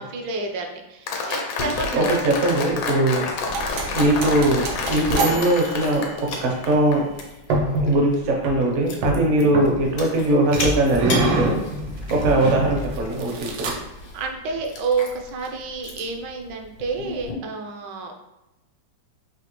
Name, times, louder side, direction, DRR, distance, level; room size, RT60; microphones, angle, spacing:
voice 1, 0.0-2.5 12.1-12.4 14.1-18.1, right 4 dB, 70° right, 3 dB, 1.2 m, -29 dB
Applause, 1.1-7.0, left 4 dB, 85° left, 1.5 m, -29 dB
Chewing mastication, 1.6-17.3, left 2 dB, 70° left, 1.4 m, -38 dB
voice 2, 1.9-3.3 3.9-4.6 4.9-7.0 7.8-11.6 12.1-13.7, right 1 dB, 55° right, 0 dB, 0.8 m, -20 dB
sound 1, 3.5-6.4 7.5-8.0 8.4-8.6 9.0-10.1 10.5-14.0, right 2 dB, 90° right, 1.5 m, -27 dB
5.0 x 2.7 x 3.0 m, 0.96 s
omnidirectional pair, 2.1 m